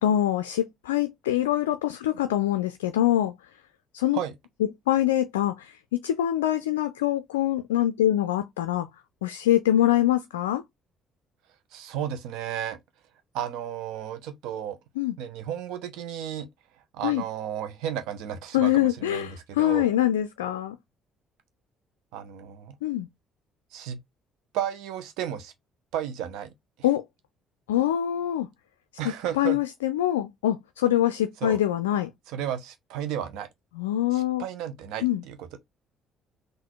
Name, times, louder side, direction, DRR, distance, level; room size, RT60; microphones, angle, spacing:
voice 1, 0.0-3.3 3.9-4.2 4.9-8.9 9.2-10.6 15.0-15.1 17.0-17.2 18.5-20.8 22.8-23.1 26.8-27.0 27.7-28.5 29.0-32.1 33.8-34.4 35.0-35.2, left 12 dB, 85° left, 0.3 m, -24 dB
voice 2, 11.7-12.8 13.3-14.8 15.2-16.5 16.9-19.9 22.1-22.7 23.7-24.0 24.5-25.5 25.9-26.5 29.0-29.6 31.4-31.6 32.3-33.5 34.1-35.6, right 9 dB, 70° right, 0.8 m, -33 dB
3.9 x 2.6 x 4.5 m
hypercardioid pair, 50°, 0 cm